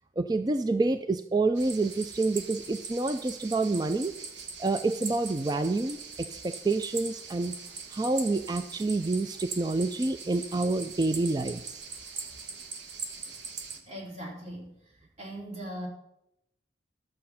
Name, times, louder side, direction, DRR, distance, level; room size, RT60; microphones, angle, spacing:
voice 1, 0.2-4.1 4.6-7.5 7.9-11.7, right 3 dB, 20° right, 10 dB, 0.3 m, -28 dB
sound 1, 1.6-13.8, right 5 dB, 80° right, 1.3 m, -41 dB
voice 2, 13.9-14.7 15.2-15.9, equal, 40° right, -2 dB, 3.1 m, -39 dB
11.5 x 7.6 x 5.7 m, 0.83 s
head